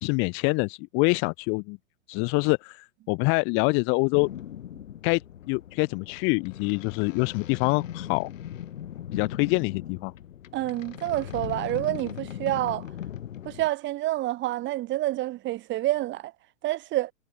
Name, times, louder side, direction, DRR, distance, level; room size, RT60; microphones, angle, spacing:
voice 1, 0.0-1.8 2.1-4.3 5.0-5.2 5.5-8.3 9.1-10.1, left 34 dB, 30° left, 0.9 m, -25 dB
sound 1, 4.1-13.7, left 10 dB, 70° left, 5.1 m, -39 dB
voice 2, 10.5-12.9 13.4-16.3 16.6-17.1, right 16 dB, 25° right, 2.7 m, -28 dB
hypercardioid pair, 135°, 40 cm